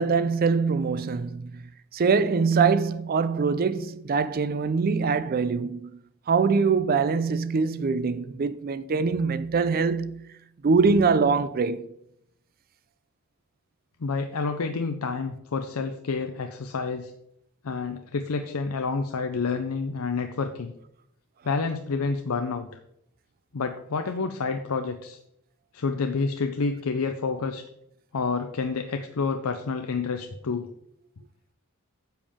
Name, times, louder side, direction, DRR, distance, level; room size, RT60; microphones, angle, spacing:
voice 1, 0.0-1.6 1.9-6.0 6.3-10.4 10.6-11.9, right 5 dB, 45° right, 0.4 m, -23 dB
voice 2, 14.0-17.1 17.6-20.7 21.4-22.7 23.5-25.2 25.7-27.6 28.1-30.7, left 4 dB, 85° left, 0.6 m, -29 dB
10.0 x 7.1 x 3.6 m
head